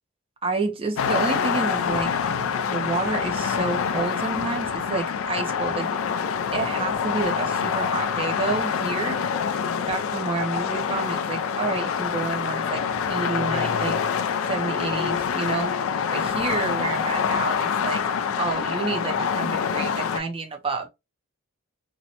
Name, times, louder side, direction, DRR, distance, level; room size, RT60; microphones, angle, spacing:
voice 1, 0.4-2.1 2.7-6.0 6.5-9.2 9.9-12.8 13.1-14.0 14.5-15.7 16.1-18.0 18.4-20.9, right 3 dB, 25° right, 0.4 m, -29 dB
sound 1, 1.0-20.2, left 6 dB, 75° left, 0.3 m, -26 dB
2.6 x 2.0 x 2.7 m
head